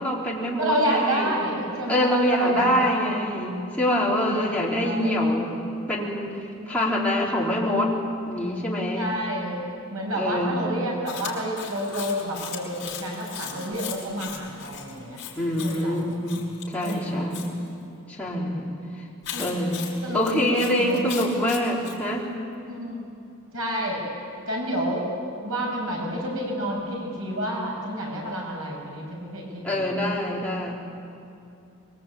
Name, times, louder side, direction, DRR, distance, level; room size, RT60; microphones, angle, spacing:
voice 1, 0.0-1.4 1.9-5.6 5.9-7.9 8.3-9.1 10.2-10.7 15.4-17.6 18.1-18.7 19.4-19.9 20.1-22.3 29.6-30.7, left 1 dB, 5° left, -5 dB, 3.9 m, -25 dB
voice 2, 0.6-3.1 4.0-4.5 4.8-5.2 8.9-9.6 9.9-16.1 16.8-17.2 18.4-18.6 19.3-19.5 20.0-20.3 20.6-21.0 21.6-21.7 22.7-23.1 23.5-24.0 24.5-25.0 25.4-30.0, equal, 75° right, -2 dB, 7.2 m, -29 dB
Chewing mastication, 11.1-17.5 19.2-22.0, left 8 dB, 50° left, 5.7 m, -38 dB
25.5 x 23.0 x 8.6 m, 2.6 s
head